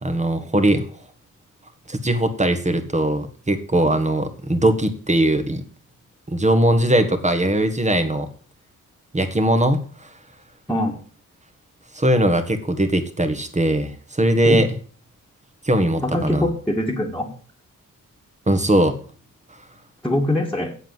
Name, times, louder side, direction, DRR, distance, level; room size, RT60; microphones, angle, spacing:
voice 1, 0.0-0.9 1.9-5.6 6.3-8.3 9.1-10.1 11.9-14.7 15.6-16.5 18.5-19.0, right 1 dB, 20° right, 8 dB, 1.7 m, -20 dB
voice 2, 10.7-11.0 14.4-14.6 16.0-17.3 20.0-20.7, left 1 dB, 5° left, -4 dB, 2.1 m, -23 dB
8.2 x 7.8 x 7.8 m, 0.42 s
wide cardioid pair, 100°, 33 cm